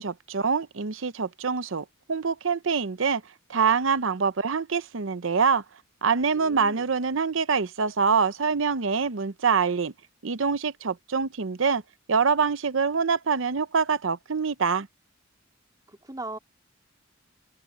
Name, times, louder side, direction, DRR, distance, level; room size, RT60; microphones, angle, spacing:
voice 1, 0.0-3.2 3.5-5.6 6.0-9.9 10.2-11.8 12.1-14.9, right 5 dB, 75° right, 0.7 m, -25 dB
voice 2, 6.3-6.9 15.9-16.4, right 2 dB, 20° right, 3.6 m, -39 dB
open air
head